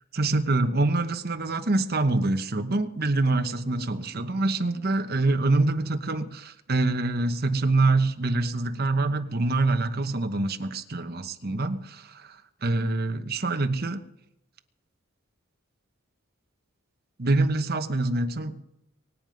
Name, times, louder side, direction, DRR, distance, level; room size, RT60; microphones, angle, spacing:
voice 1, 0.1-14.0 17.2-18.6, right 2 dB, 45° right, 1.0 m, -25 dB
23.5 x 9.3 x 5.2 m
head